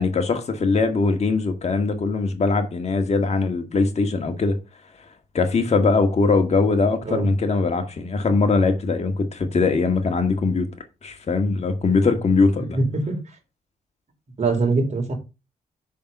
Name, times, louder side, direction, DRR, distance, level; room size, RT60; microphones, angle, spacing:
voice 1, 0.0-4.6 5.3-10.7 11.0-12.8, left 4 dB, 45° left, 1.9 m, -21 dB
voice 2, 12.6-13.2 14.4-15.1, right 3 dB, 50° right, 4.1 m, -23 dB
7.0 x 6.2 x 5.5 m
cardioid pair, 90°, 15 cm